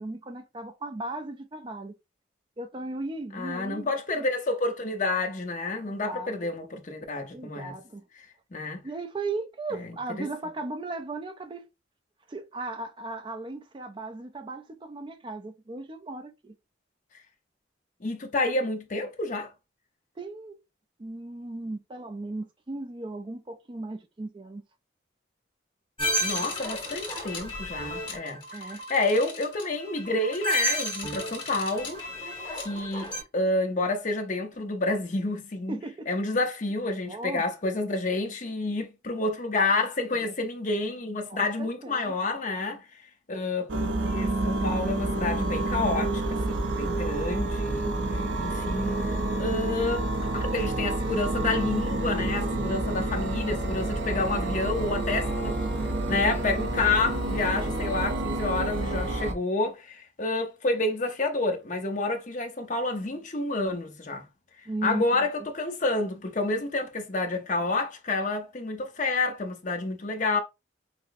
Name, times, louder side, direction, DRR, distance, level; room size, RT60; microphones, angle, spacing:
voice 1, 0.0-2.0 2.6-3.9 4.2-4.3 5.8-6.5 7.3-8.0 8.8-11.6 12.3-16.5 20.2-20.6 21.0-24.6 28.5-28.8 35.7-36.1 37.1-37.4 40.1-40.4 41.3-42.1 47.8-48.3 64.7-65.3, right 2 dB, 25° right, 0.4 m, -37 dB
voice 2, 3.3-7.7 8.5-8.8 9.7-9.9 10.2-10.3 18.0-19.5 26.2-35.8 36.1-47.9 48.4-49.0 49.4-50.1 50.3-55.6 56.1-64.3 64.8-70.4, left 2 dB, 40° left, 0.7 m, -29 dB
sound 1, 26.0-33.2, equal, 25° left, 1.4 m, -32 dB
sound 2, 43.7-59.3, right 2 dB, 70° right, 0.7 m, -29 dB
5.9 x 2.1 x 2.6 m
head